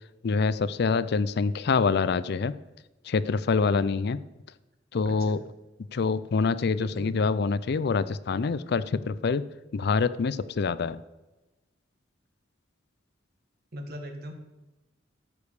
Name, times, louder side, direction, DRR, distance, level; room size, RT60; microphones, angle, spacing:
voice 1, 0.2-2.5 3.1-4.2 4.9-5.4 5.9-9.4 9.7-11.0, left 4 dB, 60° left, 16 dB, 0.4 m, -26 dB
voice 2, 5.0-5.4 6.8-7.1 13.7-14.3, equal, 55° right, 4 dB, 1.8 m, -40 dB
13.5 x 5.2 x 6.6 m, 1.1 s
head